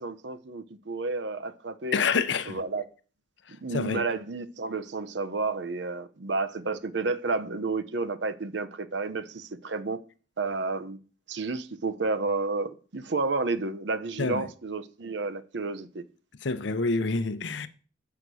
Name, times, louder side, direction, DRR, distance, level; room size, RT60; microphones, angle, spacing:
voice 1, 0.0-2.0 2.5-2.8 3.5-10.0 10.4-11.0 11.3-16.0, right 3 dB, 75° right, 0.8 m, -31 dB
voice 2, 1.9-2.6 3.7-4.0 14.2-14.5 16.4-17.7, left 4 dB, 80° left, 0.7 m, -27 dB
8.1 x 5.8 x 6.2 m
head